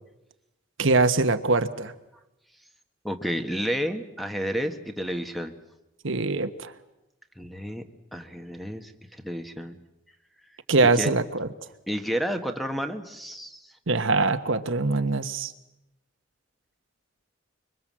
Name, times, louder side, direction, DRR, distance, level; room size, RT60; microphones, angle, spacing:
voice 1, 0.8-1.9 6.0-6.7 10.7-11.5 13.9-15.5, right 3 dB, 70° right, 9 dB, 1.2 m, -23 dB
voice 2, 3.0-5.6 7.4-7.8 8.1-9.8 10.9-11.1 11.9-13.7, equal, ahead, 7 dB, 1.3 m, -31 dB
25.5 x 23.5 x 7.5 m, 0.92 s
head